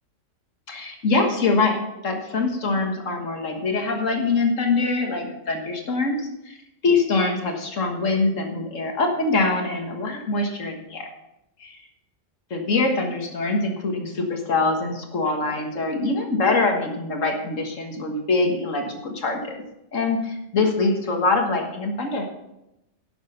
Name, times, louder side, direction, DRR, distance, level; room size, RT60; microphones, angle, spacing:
voice 1, 0.7-6.5 6.8-11.1 11.6-11.8 12.5-19.6 19.9-22.3, left 3 dB, 85° left, 3 dB, 1.9 m, -24 dB
12.0 x 7.2 x 5.5 m, 0.89 s
omnidirectional pair, 1.3 m